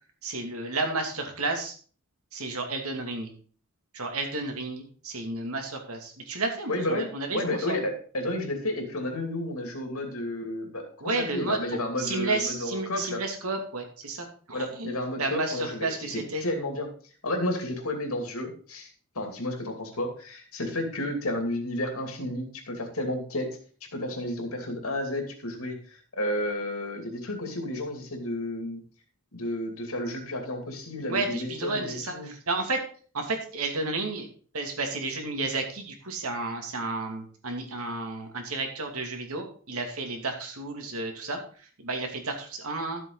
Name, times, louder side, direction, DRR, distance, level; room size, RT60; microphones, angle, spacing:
voice 1, 0.2-1.7 2.3-3.3 3.9-7.8 11.0-14.9 15.2-16.5 31.1-32.8 33.1-34.2 34.5-41.4 41.8-43.0, right 3 dB, 80° right, 3 dB, 2.5 m, -32 dB
voice 2, 6.7-13.2 14.5-16.9 17.2-18.9 19.1-23.5 23.8-25.8 26.1-28.8 29.3-32.3, left 1 dB, 75° left, 3 dB, 2.7 m, -32 dB
13.0 x 7.7 x 4.0 m, 0.43 s
head